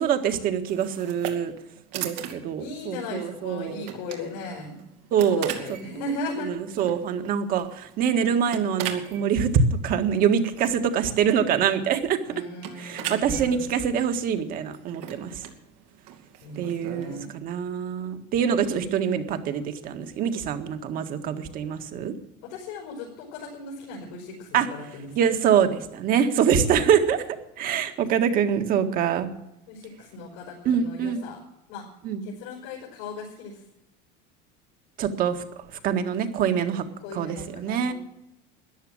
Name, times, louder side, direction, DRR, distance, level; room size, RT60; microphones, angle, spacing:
voice 1, 0.0-1.5 1.9-3.8 5.1-5.5 6.4-12.3 12.8-15.5 16.6-22.1 24.5-24.7 25.2-29.3 30.7-31.3 32.0-32.2 35.0-35.4 35.8-36.8 37.1-37.9, right 7 dB, 45° right, 7 dB, 1.8 m, -24 dB
sound 1, 0.7-17.2, right 10 dB, 85° right, 2.6 m, -40 dB
voice 2, 2.6-4.8 5.2-6.5 12.3-13.7 16.4-17.3 22.4-25.2 29.7-31.4 31.7-31.8 32.2-33.6 37.0-37.9, left 2 dB, 85° left, -1 dB, 5.2 m, -37 dB
14.0 x 10.5 x 8.8 m, 0.87 s
cardioid pair, 150°, 21 cm